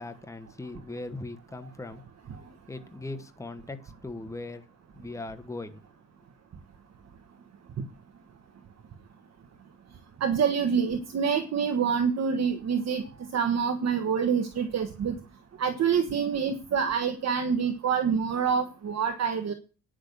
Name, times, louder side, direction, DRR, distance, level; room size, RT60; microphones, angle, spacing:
voice 1, 0.0-2.0 2.7-4.6 4.9-5.8, left 2 dB, 10° left, 1.2 m, -39 dB
voice 2, 10.2-13.0 13.3-15.1 15.6-19.5, right 6 dB, 55° right, 1.3 m, -26 dB
9.8 x 6.3 x 6.8 m
cardioid pair, 95°, 32 cm